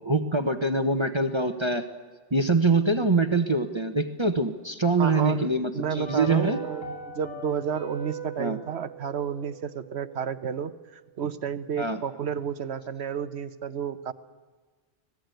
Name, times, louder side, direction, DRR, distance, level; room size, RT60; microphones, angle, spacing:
voice 1, 0.0-1.8 2.3-6.6 8.4-8.6 11.8-12.0, right 3 dB, 25° right, 7 dB, 1.1 m, -24 dB
voice 2, 5.0-14.1, right 7 dB, 85° right, 13 dB, 1.3 m, -32 dB
sound 1, 6.0-10.3 10.6-10.7, right 4 dB, 75° left, 5.1 m, -39 dB
25.5 x 18.0 x 9.2 m, 1.4 s
omnidirectional pair, 1.1 m